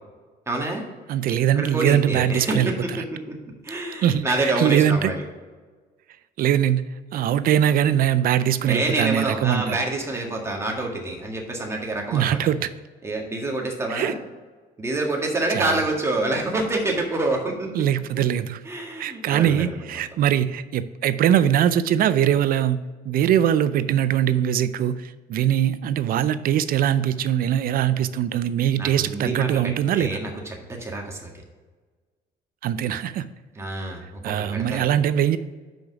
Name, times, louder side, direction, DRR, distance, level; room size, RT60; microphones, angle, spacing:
voice 1, 0.5-0.8 1.6-2.7 3.3-3.4 3.6-5.2 8.7-12.4 13.0-14.2 14.8-17.9 18.7-19.8 28.8-31.3 33.6-34.9, right 2 dB, 15° right, 0 dB, 1.7 m, -27 dB
voice 2, 1.1-2.7 4.0-5.1 6.4-6.8 7.1-9.8 12.1-12.7 13.9-14.1 15.5-15.8 17.7-18.6 19.0-30.2 32.6-33.3 34.2-35.4, right 10 dB, 60° right, 14 dB, 0.5 m, -22 dB
6.1 x 5.1 x 6.0 m, 1.4 s
cardioid pair, 110°, 17 cm